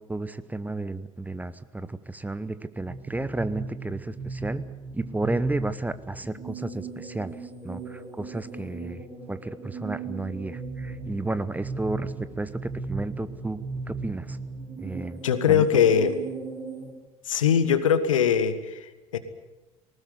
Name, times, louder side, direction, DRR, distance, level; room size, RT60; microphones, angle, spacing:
voice 1, 0.0-4.6 4.9-7.4 7.6-9.0 9.3-13.6 13.9-14.4 14.8-15.2 15.5-15.6, right 2 dB, 10° right, 15 dB, 1.0 m, -32 dB
sound 1, 2.7-16.9, right 4 dB, 30° right, 6.5 m, -37 dB
voice 2, 15.2-16.2 17.2-19.2, left 8 dB, 75° left, 12 dB, 1.5 m, -22 dB
19.5 x 19.0 x 9.6 m, 1.1 s
figure-of-eight pair, 65°, 17 cm